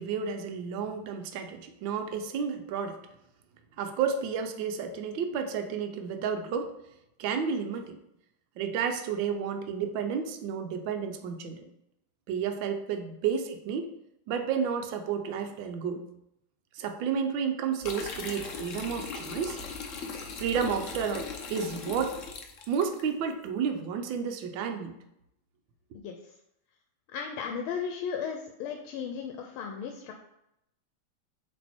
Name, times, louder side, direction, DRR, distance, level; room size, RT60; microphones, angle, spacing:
voice 1, 0.0-3.0 3.8-6.7 7.2-8.0 8.6-11.6 12.3-13.9 14.3-16.0 16.7-19.6 20.4-22.2 22.7-25.0, right 6 dB, 70° right, 5 dB, 1.4 m, -31 dB
sound 1, 17.8-23.0, left 4 dB, 60° left, 0.8 m, -39 dB
voice 2, 25.9-26.3 27.1-30.1, left 7 dB, 85° left, 3 dB, 1.5 m, -35 dB
7.7 x 3.5 x 4.4 m, 0.81 s
omnidirectional pair, 2.3 m